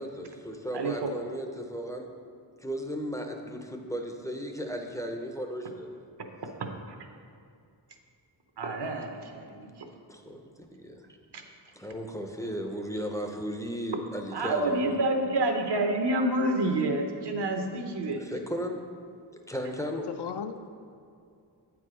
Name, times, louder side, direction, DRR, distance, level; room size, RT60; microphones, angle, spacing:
voice 1, 0.0-2.1 2.6-6.0 10.1-11.0 11.7-14.9 18.2-18.9 19.5-20.1, equal, 5° left, 3 dB, 0.5 m, -35 dB
voice 2, 0.7-1.1 6.6-7.0 8.6-9.9 11.3-11.4 14.3-18.3, right 2 dB, 65° right, 4 dB, 0.9 m, -28 dB
voice 3, 19.9-20.7, left 7 dB, 65° left, 8 dB, 0.5 m, -37 dB
8.2 x 4.7 x 4.9 m, 2.4 s
wide cardioid pair, 125°, 44 cm